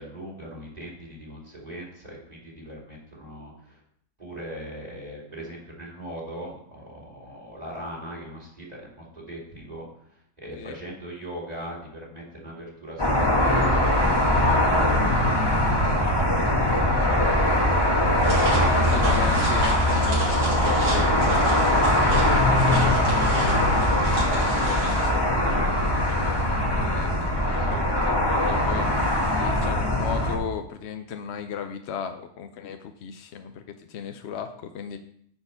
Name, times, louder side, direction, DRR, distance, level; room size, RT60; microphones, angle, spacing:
voice 1, 0.0-3.8 4.2-17.6 22.4-22.7 27.6-27.8, equal, 25° right, -3 dB, 2.5 m, -40 dB
sound 1, 13.0-30.4, left 1 dB, 15° left, 1.1 m, -21 dB
sound 2, 18.2-25.1, right 1 dB, 80° right, 3.3 m, -31 dB
voice 2, 18.3-23.6 24.2-33.6 33.9-35.0, left 7 dB, 60° left, 7 dB, 0.7 m, -36 dB
9.6 x 4.6 x 5.6 m, 0.68 s
omnidirectional pair, 1.7 m